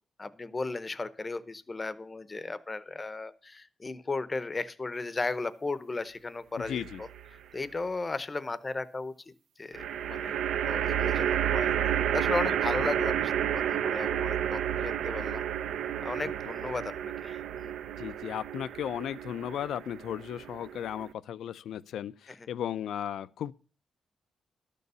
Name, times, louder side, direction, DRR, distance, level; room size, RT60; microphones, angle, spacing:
voice 1, 0.2-7.1 7.5-9.1 9.6-10.4 10.7-11.8 12.1-15.5 16.0-17.7 22.3-22.4, left 3 dB, 20° left, 0.7 m, -35 dB
voice 2, 6.6-7.0 18.0-23.5, left 10 dB, 80° left, 0.5 m, -35 dB
sound 1, 6.6-7.3 9.7-21.1, right 10 dB, 85° right, 0.6 m, -31 dB
13.0 x 6.8 x 6.7 m
wide cardioid pair, 175°, 0 cm